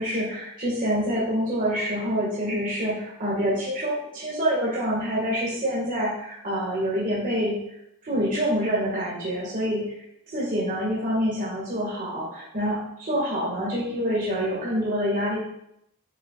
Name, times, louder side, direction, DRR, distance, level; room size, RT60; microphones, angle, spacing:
voice 1, 0.0-7.5 8.0-9.8 10.3-15.4, equal, 40° right, -6 dB, 1.9 m, -26 dB
8.5 x 6.8 x 2.4 m, 0.78 s
head